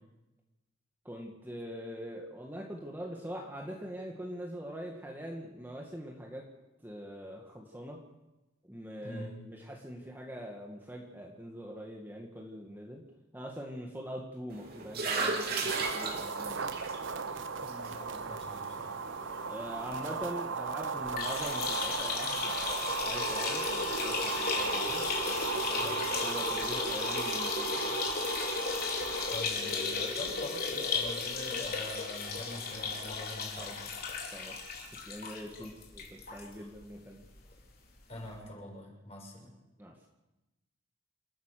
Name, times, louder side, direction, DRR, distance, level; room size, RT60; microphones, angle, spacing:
voice 1, 1.0-6.5 6.8-8.0 8.7-13.0 13.3-16.7 19.5-28.0 29.9-30.1 33.6-33.7 34.3-34.6 34.9-37.2 39.8-40.1, equal, 10° right, 0 dB, 2.0 m, -43 dB
voice 2, 9.0-9.4 17.6-18.9 25.8-26.0 29.3-33.9 35.6-35.7 36.5-36.7 38.1-39.5, left 1 dB, 35° left, -1 dB, 6.9 m, -44 dB
sound 1, 14.5-20.1, right 3 dB, 55° right, 3.5 m, -37 dB
sound 2, 15.7-29.4, right 5 dB, 75° right, 1.0 m, -36 dB
sound 3, 21.1-36.5 36.8-36.9 37.2-37.3 38.3-38.4, left 4 dB, 50° left, 4.2 m, -34 dB
29.0 x 14.0 x 6.8 m, 1.0 s
head